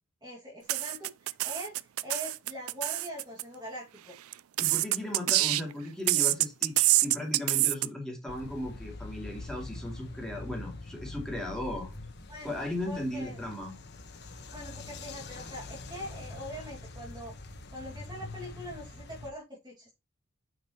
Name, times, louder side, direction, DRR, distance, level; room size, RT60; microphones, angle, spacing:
voice 1, 0.2-1.8 2.0-4.1 12.3-12.6 12.8-13.4 14.5-17.3 17.7-20.0, equal, 20° right, -2 dB, 2.0 m, -42 dB
sound 1, 0.7-3.4 4.3-5.7 6.1-7.9, right 18 dB, 80° right, 0.4 m, -26 dB
voice 2, 4.6-11.9 12.4-13.7, left 1 dB, 5° left, -1 dB, 2.5 m, -36 dB
sound 2, 8.3-19.3, left 2 dB, 50° left, 1.2 m, -44 dB
9.2 x 5.2 x 2.9 m, 0.24 s
head